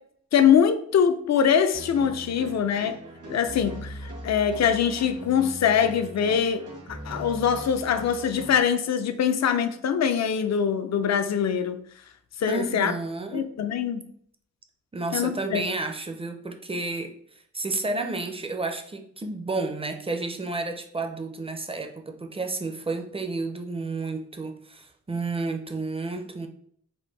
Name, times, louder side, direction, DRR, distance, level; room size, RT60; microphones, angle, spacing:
voice 1, 0.3-3.0 3.3-6.7 7.0-11.8 12.4-12.9 13.3-14.0 15.1-15.6, left 8 dB, 65° left, 9 dB, 0.5 m, -23 dB
sound 1, 1.7-8.6, right 1 dB, 80° right, 1.8 m, -40 dB
voice 2, 12.5-13.4 14.9-17.1 17.5-26.5, right 3 dB, 20° right, 5 dB, 0.4 m, -31 dB
4.3 x 2.6 x 4.5 m, 0.64 s
wide cardioid pair, 170°, 29 cm